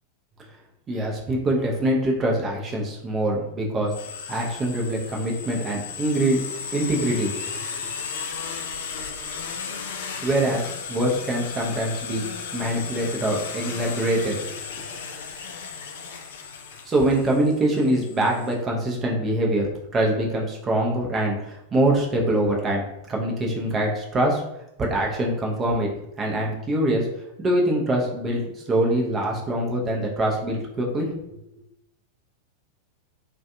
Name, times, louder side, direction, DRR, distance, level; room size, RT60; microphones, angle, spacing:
voice 1, 0.9-3.9 4.3-6.4 6.7-7.3 10.2-12.2 12.5-14.6 16.9-24.4 24.8-25.9 26.2-27.1 27.4-28.4 28.7-31.1, right 1 dB, 20° right, -1 dB, 0.6 m, -24 dB
sound 1, 3.9-18.5, left 6 dB, 55° left, 0.3 m, -35 dB
2.5 x 2.2 x 2.5 m, 0.84 s
figure-of-eight pair, 90°, 0 cm